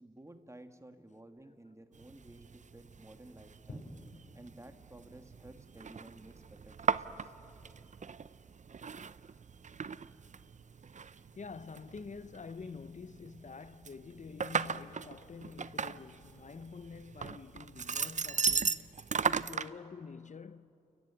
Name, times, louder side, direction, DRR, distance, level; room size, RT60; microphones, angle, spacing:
voice 1, 0.0-3.9 4.3-7.3, right 1 dB, 20° right, 2.0 m, -54 dB
sound 1, 1.9-19.7, right 6 dB, 60° right, 0.6 m, -38 dB
sound 2, 3.1-20.2, left 1 dB, 85° left, 5.9 m, -61 dB
voice 2, 11.1-20.7, left 5 dB, 60° left, 0.7 m, -48 dB
30.0 x 14.5 x 9.7 m
cardioid pair, 45°, 14 cm